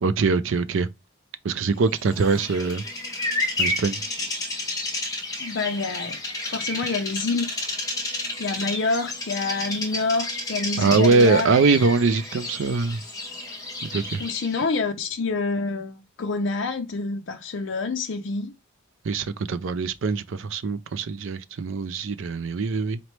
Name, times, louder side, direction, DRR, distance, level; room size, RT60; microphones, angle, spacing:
voice 1, 0.0-0.9 1.4-2.8 3.6-4.0 10.8-13.0 13.8-14.2 19.0-23.0, right 4 dB, 65° right, 0.4 m, -22 dB
Bird vocalization bird call bird song, 2.0-14.6, left 2 dB, 15° left, 1.1 m, -31 dB
voice 2, 5.4-6.2 6.5-7.5 8.4-11.6 14.2-18.5, left 3 dB, 55° left, 0.5 m, -27 dB
4.2 x 3.0 x 3.2 m
head